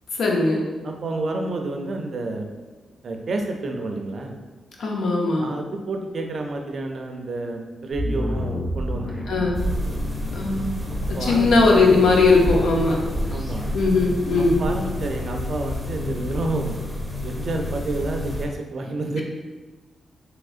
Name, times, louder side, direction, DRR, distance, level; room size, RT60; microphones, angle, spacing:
voice 1, 0.1-0.6 4.8-5.5 9.3-9.6 10.3-10.8 11.1-13.0 13.7-14.6, left 3 dB, 80° left, -1 dB, 0.6 m, -19 dB
voice 2, 0.8-2.5 3.0-4.4 5.4-9.5 11.2-11.6 13.3-13.7 14.4-16.8 17.2-19.2, right 2 dB, 60° right, 3 dB, 0.4 m, -29 dB
sound 1, 7.9-16.1, equal, 25° left, 0.7 m, -33 dB
sound 2, 9.5-18.5, left 1 dB, 15° right, 0.6 m, -29 dB
3.5 x 3.0 x 2.4 m, 1.3 s
cardioid pair, 75°, 0 cm